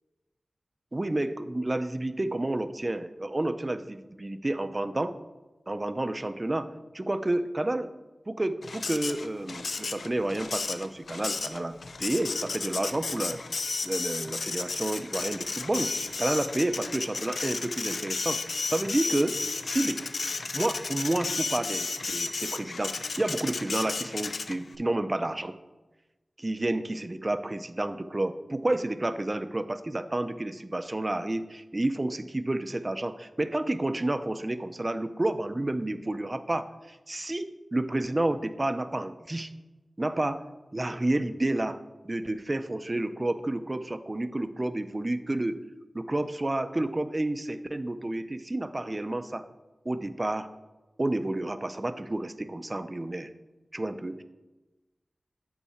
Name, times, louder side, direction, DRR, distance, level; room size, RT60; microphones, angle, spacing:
voice 1, 0.9-5.2 5.7-7.9 8.3-13.4 13.8-20.0 20.5-25.6 26.4-39.5 40.0-40.4 40.7-41.8 42.0-45.6 45.9-49.4 49.9-50.5 51.0-53.3 53.7-54.2, right 1 dB, 30° right, 11 dB, 0.4 m, -30 dB
Printer, 8.6-24.7, left 4 dB, 85° left, 0.4 m, -33 dB
8.3 x 4.7 x 4.3 m, 1.1 s
wide cardioid pair, 75°, 0 cm